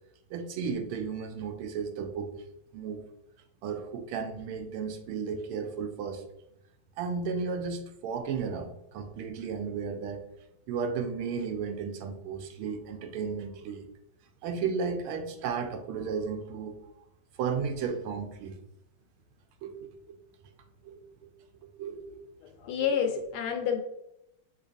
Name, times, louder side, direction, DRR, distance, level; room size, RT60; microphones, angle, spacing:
voice 1, 0.3-2.3 2.7-3.0 3.6-6.2 7.0-10.2 10.7-13.9 14.4-16.9 17.4-18.6 19.6-20.2 20.8-21.3 21.8-22.2, right 5 dB, 90° right, 6 dB, 1.5 m, -34 dB
voice 2, 22.4-23.8, left 7 dB, 80° left, 3 dB, 1.6 m, -29 dB
6.8 x 2.8 x 2.6 m, 0.83 s
omnidirectional pair, 2.4 m